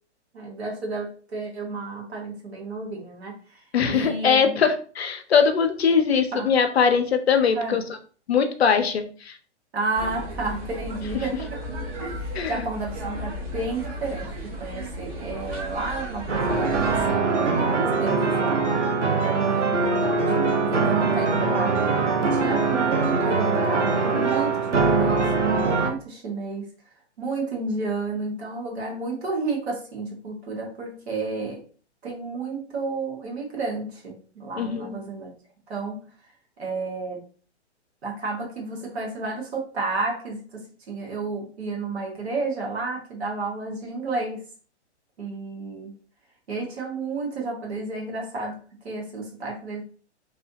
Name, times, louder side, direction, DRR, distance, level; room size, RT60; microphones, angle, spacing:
voice 1, 0.3-3.4 3.9-4.6 6.3-6.5 7.6-7.8 9.7-11.6 12.0-18.6 19.2-26.6 27.2-31.6 32.0-35.3 35.7-36.0 36.6-37.2 38.0-44.4 45.2-45.9 46.5-49.8, right 3 dB, 60° right, -1 dB, 1.5 m, -31 dB
voice 2, 3.7-7.8 8.3-9.4 12.3-12.7 34.6-35.0, left 6 dB, 60° left, 7 dB, 0.6 m, -21 dB
sound 1, 9.9-17.0, right 1 dB, 35° right, 1.0 m, -34 dB
sound 2, 16.3-25.9, right 4 dB, 85° right, 0.7 m, -22 dB
3.2 x 2.7 x 2.7 m, 0.41 s
figure-of-eight pair, 120°, 35 cm